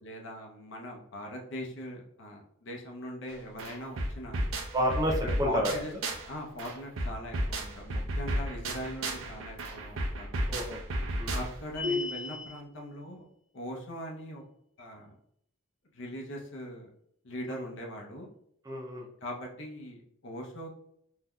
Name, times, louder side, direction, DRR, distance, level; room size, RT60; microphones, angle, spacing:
voice 1, 0.0-4.5 5.2-5.9 6.3-10.3 11.3-13.3 13.5-14.4 14.8-15.2 15.9-16.9 17.2-18.3 19.2-20.7, equal, 60° left, 0 dB, 0.6 m, -40 dB
sound 1, 3.3-3.4 3.6-6.3 6.6-11.7, right 1 dB, 75° right, 0.6 m, -33 dB
voice 2, 4.7-5.7 10.5-10.8 11.2-11.4 17.5-17.6 18.7-19.1, equal, 15° right, 0 dB, 0.4 m, -30 dB
sound 2, 11.7-12.6, left 3 dB, 55° right, 1.0 m, -32 dB
3.6 x 2.7 x 2.2 m, 0.71 s
head